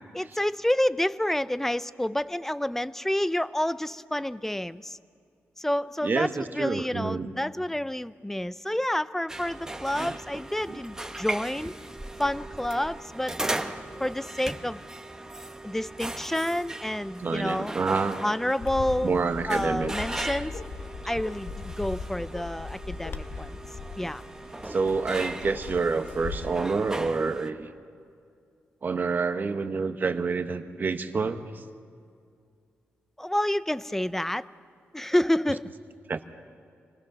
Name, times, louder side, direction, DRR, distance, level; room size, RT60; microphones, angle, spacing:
voice 1, 0.1-5.0 5.6-6.3 6.6-11.7 12.2-13.4 14.0-14.8 15.6-17.7 18.2-19.1 19.5-20.6 21.0-23.5 24.0-24.2 33.2-34.4 34.9-35.7, left 1 dB, 5° left, 15 dB, 0.5 m, -29 dB
voice 2, 6.0-7.3 10.0-10.2 10.7-10.8 17.2-18.2 19.0-19.9 24.6-27.7 28.8-31.6 36.1-36.2, right 4 dB, 45° right, 8 dB, 1.2 m, -28 dB
sound 1, 9.3-27.5, right 2 dB, 15° right, 1.1 m, -38 dB
Bark, 18.6-26.6, left 5 dB, 60° left, 1.0 m, -39 dB
26.5 x 19.5 x 6.2 m, 2.3 s
cardioid pair, 95°, 5 cm